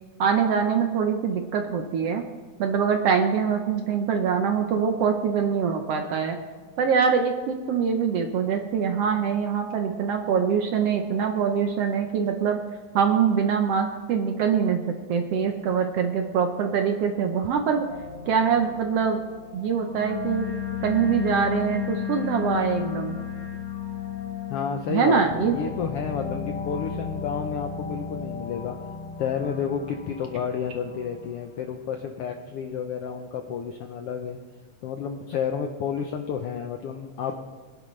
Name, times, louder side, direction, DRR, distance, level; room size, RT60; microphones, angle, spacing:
voice 1, 0.2-2.2 2.6-6.4 6.8-12.6 12.9-14.8 15.1-17.8 18.3-19.2 19.5-20.5 20.8-23.2 24.9-25.5, right 6 dB, 70° right, 4 dB, 1.5 m, -24 dB
sound 1, 17.9-31.4, left 8 dB, 60° left, 1.1 m, -34 dB
voice 2, 24.5-28.8 29.2-34.4 34.8-37.4, left 7 dB, 80° left, 5 dB, 1.3 m, -31 dB
21.5 x 10.5 x 3.2 m, 1.5 s
omnidirectional pair, 3.5 m